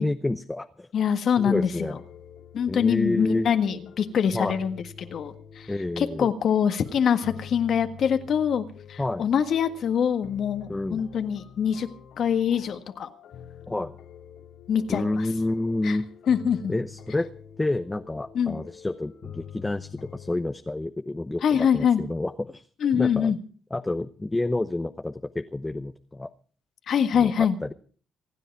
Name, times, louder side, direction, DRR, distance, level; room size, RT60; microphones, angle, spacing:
voice 1, 0.0-0.9 1.4-2.0 2.7-3.5 4.3-4.6 5.7-6.3 9.0-9.3 10.7-11.1 13.7-14.0 14.9-16.1 16.7-17.3 17.6-22.7 22.9-23.3 23.7-26.3 27.2-27.7, left 2 dB, 15° left, 8 dB, 0.9 m, -29 dB
voice 2, 0.9-1.9 2.5-4.8 5.1-5.7 6.0-8.6 8.9-11.9 12.2-13.1 14.7-15.1 15.8-16.0 16.3-16.7 18.3-18.6 21.4-22.0 22.8-23.4 26.9-27.6, left 8 dB, 65° left, 8 dB, 1.6 m, -24 dB
sound 1, 1.5-20.3, left 8 dB, 80° left, 2.8 m, -46 dB
25.5 x 10.0 x 4.7 m, 0.43 s
cardioid pair, 90°, 0 cm